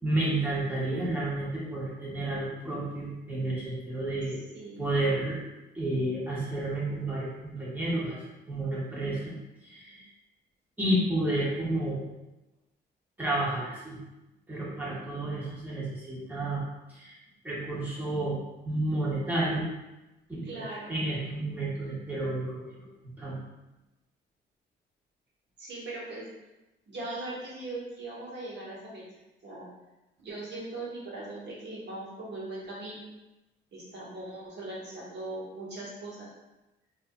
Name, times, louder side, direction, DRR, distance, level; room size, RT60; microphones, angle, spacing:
voice 1, 0.0-4.4 4.8-5.4 5.7-8.2 8.5-9.3 9.6-10.0 10.8-12.0 13.2-14.0 14.5-16.6 16.9-17.2 17.4-18.4 18.6-19.7 20.3-22.5 22.7-22.9 23.2-23.4, right 1 dB, 10° right, -8 dB, 1.3 m, -31 dB
voice 2, 4.3-5.0 20.4-20.9 25.6-26.3 26.9-29.0 29.4-29.7 30.2-33.0 33.7-36.3, right 2 dB, 60° right, -6 dB, 1.3 m, -40 dB
4.4 x 2.7 x 2.2 m, 1.0 s
cardioid pair, 90°, 20 cm